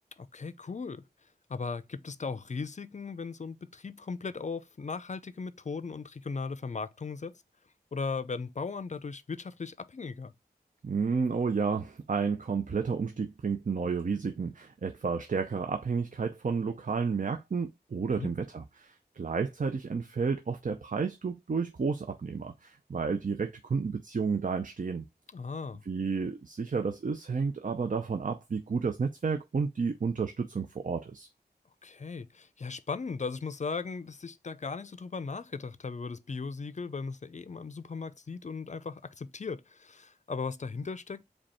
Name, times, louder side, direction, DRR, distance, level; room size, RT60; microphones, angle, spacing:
voice 1, 0.2-1.0 1.5-7.3 7.9-10.3 18.1-18.3 25.3-25.8 31.8-41.2, left 4 dB, 45° left, 0.4 m, -37 dB
voice 2, 10.8-25.0 25.9-31.3, right 5 dB, 50° right, 0.5 m, -31 dB
5.0 x 2.3 x 4.2 m
wide cardioid pair, 50°, 17 cm